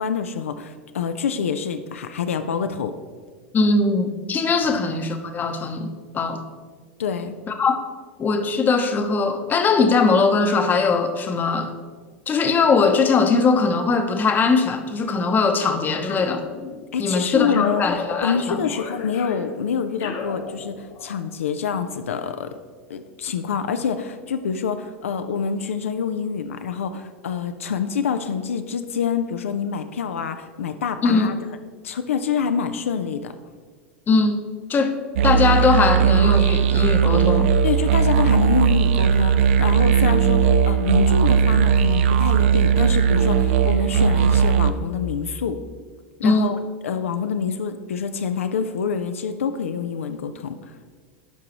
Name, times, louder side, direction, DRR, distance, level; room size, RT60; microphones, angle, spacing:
voice 1, 0.0-2.9 4.6-4.8 7.0-7.3 16.9-17.9 18.2-22.5 22.9-31.3 31.8-33.3 37.6-45.6 46.2-46.6 46.8-50.6, left 6 dB, 85° left, 8 dB, 0.4 m, -26 dB
voice 2, 3.5-6.4 7.5-7.8 8.2-11.7 12.3-16.5 17.0-18.6 31.0-31.3 34.1-34.4 34.7-35.0 35.2-37.5 46.2-46.5, left 4 dB, 25° left, 7 dB, 0.8 m, -20 dB
sound 1, 16.0-17.0 17.5-21.2, left 5 dB, 50° left, 1.0 m, -35 dB
sound 2, 35.2-44.7, right 7 dB, 65° right, 0.4 m, -18 dB
11.5 x 4.7 x 3.0 m, 1.5 s
hypercardioid pair, 95°, 7 cm